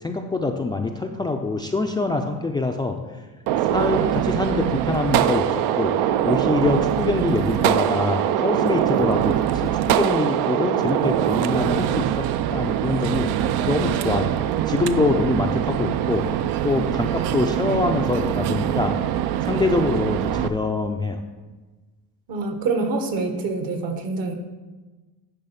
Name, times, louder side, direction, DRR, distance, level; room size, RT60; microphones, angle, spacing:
voice 1, 0.0-3.0 3.7-5.5 5.8-5.9 6.2-12.1 12.5-13.3 13.7-14.4 14.7-16.3 16.6-19.0 19.4-21.2, left 3 dB, 15° left, 3 dB, 0.3 m, -24 dB
Gunshot gunfire, 3.5-20.5, right 11 dB, 80° right, 0.5 m, -23 dB
voice 2, 22.3-24.3, right 3 dB, 65° right, 5 dB, 1.3 m, -26 dB
10.0 x 3.5 x 5.7 m, 1.2 s
cardioid pair, 130°, 38 cm